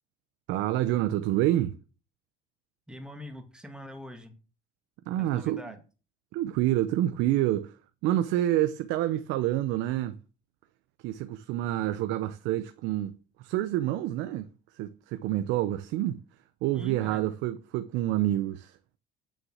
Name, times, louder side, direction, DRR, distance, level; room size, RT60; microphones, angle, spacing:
voice 1, 0.5-1.7 5.1-5.6 6.3-10.2 11.0-16.2 16.6-18.8, right 14 dB, 75° right, 0.9 m, -28 dB
voice 2, 2.9-4.4 5.2-5.8 16.7-17.3, equal, 5° right, 2.1 m, -43 dB
9.0 x 6.6 x 7.5 m
cardioid pair, 145°, 20 cm